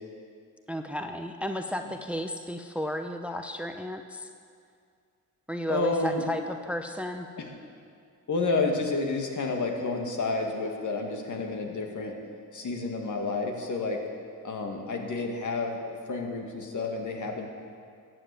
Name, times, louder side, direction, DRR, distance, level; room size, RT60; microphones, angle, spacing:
voice 1, 0.7-4.3 5.5-7.3, equal, 5° right, 6 dB, 0.7 m, -33 dB
voice 2, 5.7-6.2 7.4-7.5 8.3-12.2 12.5-14.1 14.4-15.8 16.1-17.5, left 3 dB, 55° left, 2 dB, 2.0 m, -30 dB
13.0 x 7.9 x 8.4 m, 2.3 s
cardioid pair, 80°, 36 cm